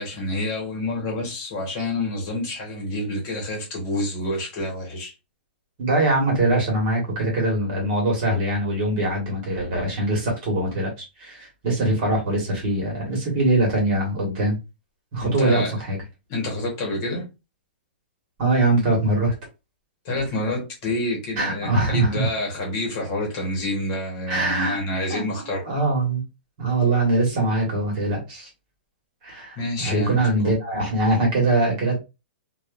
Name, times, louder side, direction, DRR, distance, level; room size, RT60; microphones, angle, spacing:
voice 1, 0.0-5.1 15.2-15.7 16.3-17.3 20.0-25.6 29.6-30.2, left 1 dB, 35° left, 1.1 m, -28 dB
voice 2, 5.8-10.9 11.2-14.5 15.1-16.0 18.4-19.3 21.4-22.3 24.3-24.8 25.1-26.2 26.6-28.5 29.2-32.0, right 2 dB, 40° right, 1.5 m, -22 dB
2.9 x 2.3 x 2.4 m
hypercardioid pair, 165°, 6 cm